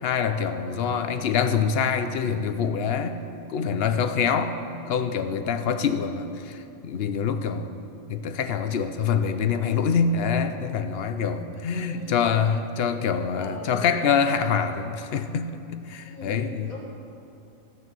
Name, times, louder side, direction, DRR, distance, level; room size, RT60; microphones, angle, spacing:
voice 1, 0.0-3.2 3.5-4.6 4.9-7.7 8.1-16.7, left 6 dB, 60° left, 9 dB, 0.7 m, -25 dB
voice 2, 11.7-12.3 13.3-13.9 16.1-16.8, left 2 dB, 75° left, -5 dB, 1.6 m, -41 dB
15.5 x 6.6 x 6.2 m, 2.8 s
omnidirectional pair, 1.4 m